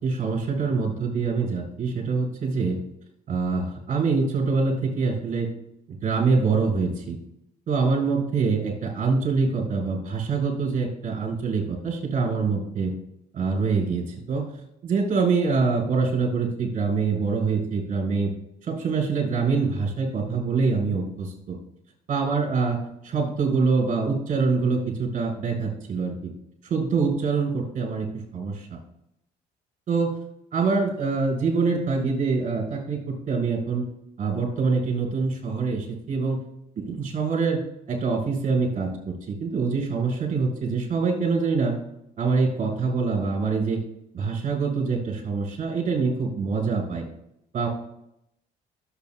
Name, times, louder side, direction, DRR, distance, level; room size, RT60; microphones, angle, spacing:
voice 1, 0.0-2.8 3.3-5.5 5.9-7.2 7.7-12.9 13.3-14.5 14.8-18.3 18.6-21.6 22.1-22.8 23.0-26.3 26.7-28.1 28.3-28.8 29.9-30.2 30.5-33.8 34.2-36.4 36.8-37.6 37.9-41.8 42.2-43.8 44.1-47.0 47.5-47.7, right 4 dB, 50° right, -1 dB, 4.3 m, -25 dB
23.0 x 7.9 x 2.2 m, 0.80 s
cardioid pair, 110°, 17 cm